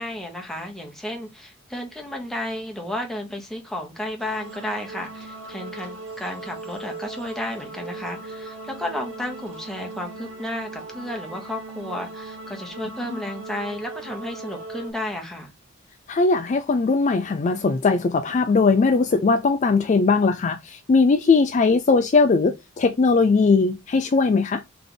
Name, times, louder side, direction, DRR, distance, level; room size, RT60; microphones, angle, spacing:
voice 1, 0.0-15.5, left 1 dB, ahead, 1.1 m, -32 dB
sound 1, 4.2-14.9, right 3 dB, 70° right, 1.3 m, -38 dB
voice 2, 16.1-24.6, left 4 dB, 35° left, 0.4 m, -19 dB
3.5 x 3.3 x 3.9 m
head